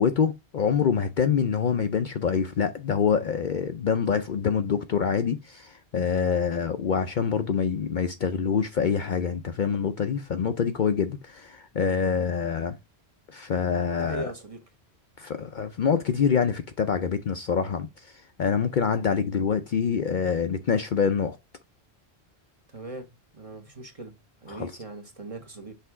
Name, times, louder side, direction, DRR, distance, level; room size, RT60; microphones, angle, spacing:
voice 1, 0.0-12.8 13.3-14.3 15.2-21.4 24.5-24.7, left 6 dB, 55° left, 0.6 m, -26 dB
voice 2, 14.0-14.6 22.7-23.1 23.3-24.1 24.4-25.7, right 2 dB, 35° right, 1.2 m, -39 dB
5.7 x 3.5 x 4.6 m
omnidirectional pair, 1.1 m